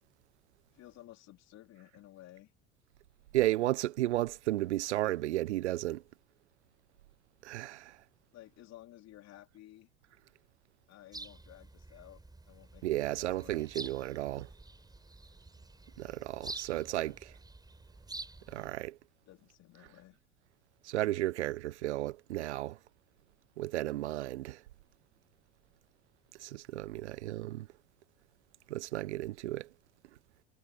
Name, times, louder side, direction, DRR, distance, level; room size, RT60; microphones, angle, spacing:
voice 1, 0.7-2.5 8.3-9.9 10.9-13.6 16.9-17.2 19.3-20.2, left 15 dB, 50° left, 3.5 m, -55 dB
voice 2, 3.3-6.0 7.4-7.9 12.8-14.5 16.0-17.3 18.5-19.0 20.8-22.8 23.6-24.6 26.4-27.7 28.7-29.7, right 15 dB, 75° right, 0.5 m, -33 dB
sound 1, 11.1-18.7, right 2 dB, 10° right, 6.5 m, -48 dB
figure-of-eight pair, 70°, 34 cm